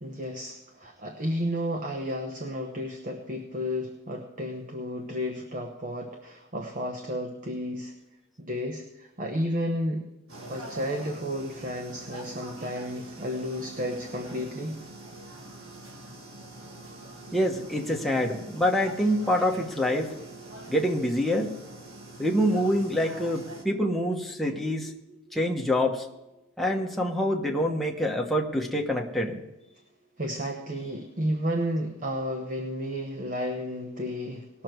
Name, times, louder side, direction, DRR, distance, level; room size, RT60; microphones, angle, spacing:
voice 1, 0.0-7.9 8.4-10.0 10.5-14.8 30.2-34.6, equal, 35° right, 3 dB, 1.0 m, -32 dB
sound 1, 10.3-23.6, right 1 dB, 65° right, 1.8 m, -44 dB
voice 2, 17.3-20.1 20.7-21.5 22.2-26.1 26.6-29.4, equal, ahead, 0 dB, 1.2 m, -26 dB
19.0 x 6.6 x 4.6 m, 0.99 s
head